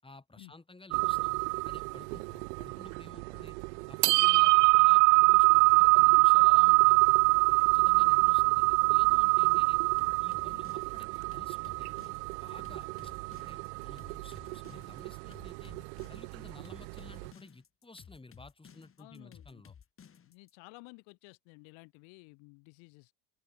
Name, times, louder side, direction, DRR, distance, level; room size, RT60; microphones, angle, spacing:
voice 1, 0.0-3.6 3.9-7.0 7.7-9.8 10.2-12.1 12.4-15.8 16.1-19.7, left 3 dB, 10° left, 5.9 m, -54 dB
sound 1, 0.9-17.3, right 33 dB, 80° right, 0.6 m, -25 dB
sound 2, 10.0-20.5, left 7 dB, 25° left, 3.4 m, -55 dB
voice 2, 19.0-19.6 20.2-23.1, left 33 dB, 70° left, 5.2 m, -54 dB
open air
supercardioid pair, 130°, 49 cm